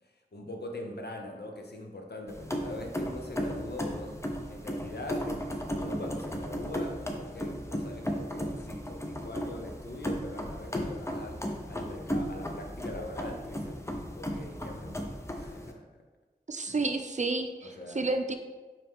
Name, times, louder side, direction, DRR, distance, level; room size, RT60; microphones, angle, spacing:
voice 1, 0.0-4.2 4.5-13.8 14.2-15.9 16.7-16.9 17.6-18.1, left 1 dB, 85° left, 2 dB, 0.8 m, -42 dB
sound 1, 2.3-15.7, equal, 15° left, 0.7 m, -35 dB
voice 2, 16.5-18.4, right 3 dB, 45° right, 6 dB, 0.6 m, -31 dB
5.4 x 5.0 x 3.6 m, 1.3 s
wide cardioid pair, 60°, 17 cm